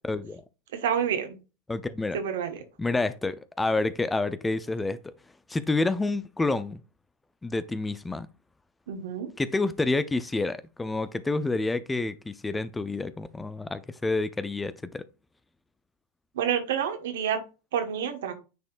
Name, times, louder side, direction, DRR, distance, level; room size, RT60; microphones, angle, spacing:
voice 1, 0.0-0.4 1.7-2.2 2.8-5.0 5.5-6.8 7.4-8.3 9.4-15.0, left 3 dB, 10° left, 0.5 m, -28 dB
voice 2, 0.7-1.4 2.1-2.6 8.9-9.3 16.3-17.4 17.7-18.3, right 8 dB, 65° right, 1.4 m, -28 dB
9.3 x 4.2 x 2.5 m
figure-of-eight pair, 90°, 0 cm